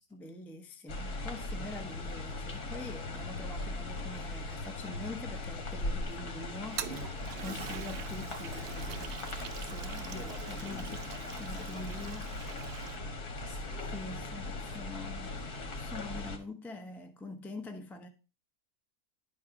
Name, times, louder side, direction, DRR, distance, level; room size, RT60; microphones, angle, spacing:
voice 1, 0.1-11.0 11.4-12.3 13.9-15.4 15.8-18.1, left 2 dB, ahead, 0.4 m, -45 dB
sound 1, 0.9-16.4, left 2 dB, 75° left, 1.9 m, -39 dB
Toilet flush, 6.6-13.0, right 9 dB, 65° right, 0.6 m, -44 dB
voice 2, 7.2-7.6 9.7-14.1 14.4-15.3, left 2 dB, 45° left, 2.6 m, -52 dB
11.0 x 4.2 x 4.8 m
omnidirectional pair, 1.6 m